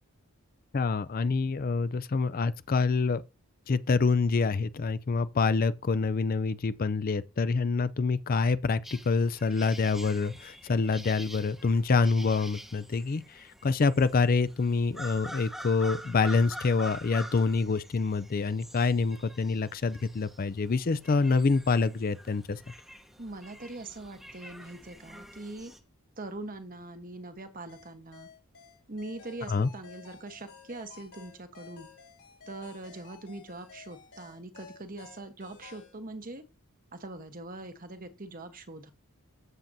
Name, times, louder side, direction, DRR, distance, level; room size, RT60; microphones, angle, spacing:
voice 1, 0.7-3.2 3.7-22.6 29.5-29.7, left 4 dB, 40° left, 0.4 m, -26 dB
sound 1, 8.8-25.8, equal, ahead, 0.9 m, -46 dB
voice 2, 23.2-25.7 26.2-28.3 28.9-31.9 32.5-36.4 36.9-38.9, right 2 dB, 40° right, 1.1 m, -42 dB
sound 2, 27.7-36.0, left 5 dB, 85° left, 3.8 m, -52 dB
14.5 x 7.4 x 2.7 m
head